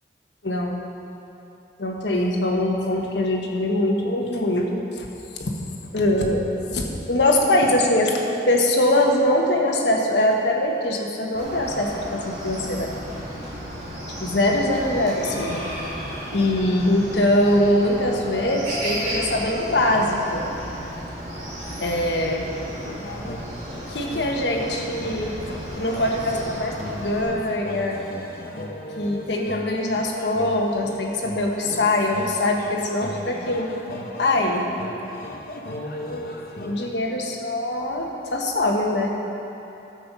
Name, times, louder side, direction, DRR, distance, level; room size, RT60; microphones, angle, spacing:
voice 1, 0.4-0.8 1.8-5.1 5.4-5.5 5.9-12.9 14.2-15.6 16.3-20.4 21.8-22.5 23.9-25.3 25.8-28.0 29.0-33.7 34.2-34.7 36.6-39.1, left 1 dB, 80° left, 0 dB, 1.3 m, -22 dB
Chicken rooster, 11.3-27.2, equal, 40° right, 2.6 m, -33 dB
sound 1, 22.6-36.9, left 1 dB, 55° left, 0.9 m, -37 dB
12.0 x 7.8 x 5.4 m, 3.0 s
head